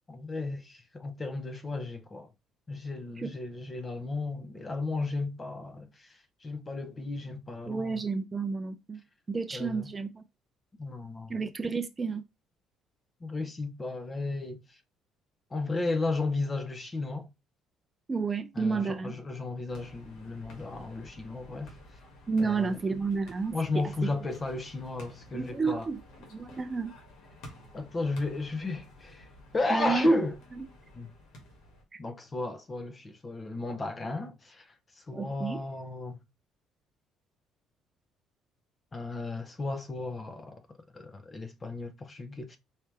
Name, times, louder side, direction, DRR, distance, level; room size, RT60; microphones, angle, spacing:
voice 1, 0.1-2.3 2.7-6.1 6.4-8.0 9.5-9.9 10.8-11.4 13.2-14.8 15.5-17.3 18.6-21.7 22.4-22.8 23.5-25.9 27.7-29.3 29.5-30.4 30.9-31.1 32.0-34.7 35.0-36.2 38.9-40.6 40.9-42.6, left 2 dB, 25° left, 0.7 m, -34 dB
voice 2, 7.7-9.0 9.3-10.2 11.3-12.2 18.1-19.1 22.3-24.1 25.3-26.0 26.3-26.9 29.7-30.1 30.6-30.7 31.9-32.0 35.1-35.6, right 4 dB, 20° right, 0.4 m, -31 dB
sound 1, 19.7-31.8, left 1 dB, 85° left, 1.9 m, -52 dB
4.8 x 2.7 x 3.3 m
cardioid pair, 135°, 0 cm